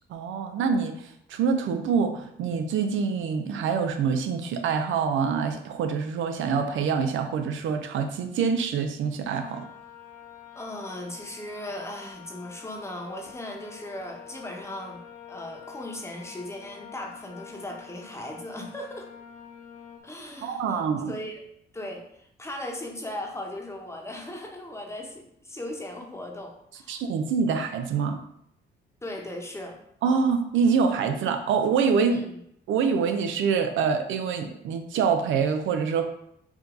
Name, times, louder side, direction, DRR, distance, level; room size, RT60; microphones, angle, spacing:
voice 1, 0.1-9.6 20.4-21.1 26.9-28.2 30.0-32.2 32.7-36.1, right 6 dB, 75° right, 7 dB, 0.5 m, -25 dB
sound 1, 9.3-20.0, left 9 dB, 40° left, 0.9 m, -47 dB
voice 2, 10.5-15.0 15.3-19.1 20.0-21.5 21.7-27.0 29.0-29.8 32.1-32.4, left 1 dB, 15° left, 0 dB, 1.0 m, -38 dB
4.9 x 2.7 x 3.8 m, 0.74 s
cardioid pair, 90°, 20 cm